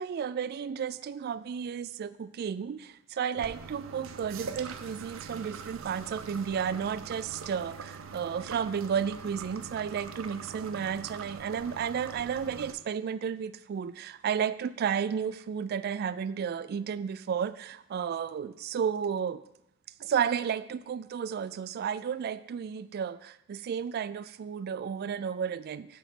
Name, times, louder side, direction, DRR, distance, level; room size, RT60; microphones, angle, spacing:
voice 1, 0.0-19.4 20.0-26.0, right 7 dB, 50° right, 0.3 m, -32 dB
sound 1, 3.4-12.7, right 5 dB, 90° right, 0.6 m, -43 dB
6.5 x 4.9 x 6.1 m
head